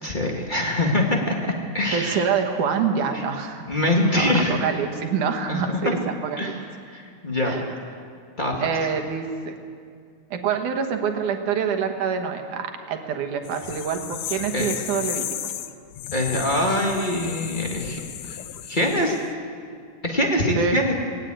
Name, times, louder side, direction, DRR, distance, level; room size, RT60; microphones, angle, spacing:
voice 1, 0.0-1.3 1.7-2.3 3.1-3.3 3.7-4.7 5.5-5.8 6.4-6.6 6.9-7.6 8.4-8.9 14.5-14.7 16.1-18.4 18.7-19.1 20.0-20.9, left 1 dB, 25° left, 0 dB, 1.0 m, -24 dB
voice 2, 1.9-3.6 4.1-6.0 6.2-6.5 7.4-7.6 8.6-9.6 10.3-15.5 20.6-20.8, right 6 dB, 65° right, 5 dB, 2.7 m, -26 dB
sound 1, 13.4-19.3, left 11 dB, 75° left, 1.6 m, -34 dB
19.0 x 17.5 x 9.0 m, 2.2 s
omnidirectional pair, 4.1 m